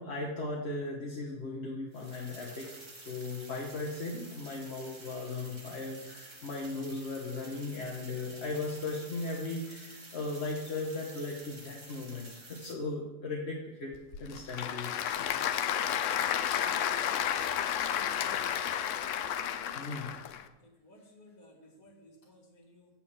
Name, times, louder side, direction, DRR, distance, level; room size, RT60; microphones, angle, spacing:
voice 1, 0.0-2.7 3.1-13.9 14.2-14.9 19.7-20.1, left 3 dB, 50° left, -2 dB, 1.3 m, -37 dB
sound 1, 1.9-12.7, right 2 dB, 20° right, 1.0 m, -50 dB
Applause / Crowd, 13.9-20.4, left 9 dB, 65° left, 0.8 m, -31 dB
voice 2, 17.9-18.6 19.5-20.0 20.8-22.9, left 1 dB, 90° left, -2 dB, 2.0 m, -57 dB
8.4 x 4.4 x 7.2 m, 1.1 s
omnidirectional pair, 1.5 m